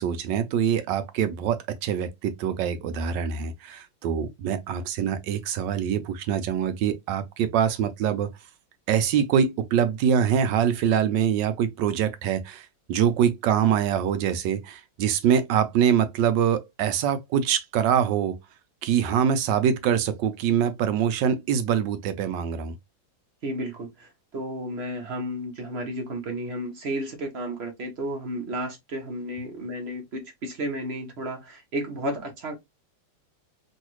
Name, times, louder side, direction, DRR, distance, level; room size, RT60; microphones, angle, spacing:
voice 1, 0.0-8.3 8.9-18.4 18.8-22.7, right 8 dB, 75° right, 1.2 m, -24 dB
voice 2, 23.4-32.5, right 1 dB, 50° right, 0.8 m, -32 dB
3.2 x 2.7 x 2.9 m
omnidirectional pair, 2.1 m